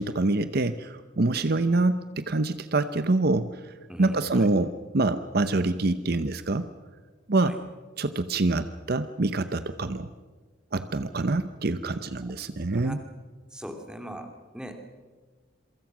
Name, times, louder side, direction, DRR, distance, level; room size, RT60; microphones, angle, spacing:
voice 1, 0.0-3.7 4.0-6.7 7.3-7.6 8.0-10.1 10.7-13.0, right 2 dB, 50° right, 12 dB, 0.8 m, -26 dB
voice 2, 3.9-4.5 7.4-7.6 12.7-13.0 13.5-14.8, equal, 5° right, 5 dB, 2.4 m, -40 dB
27.5 x 23.5 x 6.1 m, 1.4 s
head